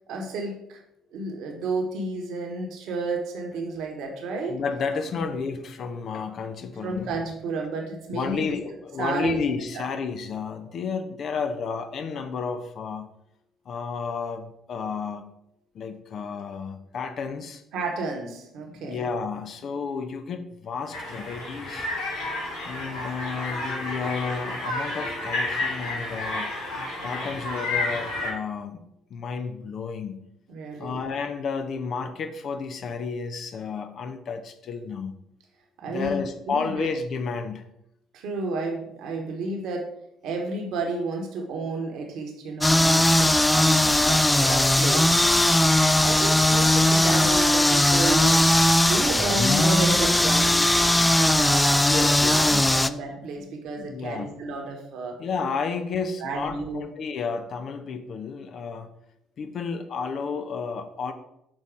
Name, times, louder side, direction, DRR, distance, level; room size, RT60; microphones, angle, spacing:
voice 1, 0.1-0.8 1.1-4.6 5.2-5.3 6.8-8.6 9.0-9.4 9.7-9.8 17.7-19.0 30.5-31.0 35.8-36.9 38.1-39.9 40.2-45.1 45.6-48.5 48.8-50.7 51.1-55.2 56.2-56.9, right 3 dB, 65° right, 2 dB, 1.3 m, -31 dB
voice 2, 4.5-7.1 8.1-13.1 13.7-15.3 15.7-17.6 18.7-21.9 22.6-26.5 27.0-28.8 29.1-30.2 30.8-35.1 35.9-37.6 51.9-52.8 53.4-53.5 53.8-54.3 55.2-58.9 59.4-61.1, left 5 dB, 55° left, 7 dB, 0.8 m, -31 dB
sound 1, 20.9-28.3, left 2 dB, 80° left, 2.1 m, -31 dB
sound 2, 42.6-52.9, left 1 dB, 10° left, 0.4 m, -19 dB
6.4 x 4.0 x 4.9 m, 0.79 s
hypercardioid pair, 50°, 0 cm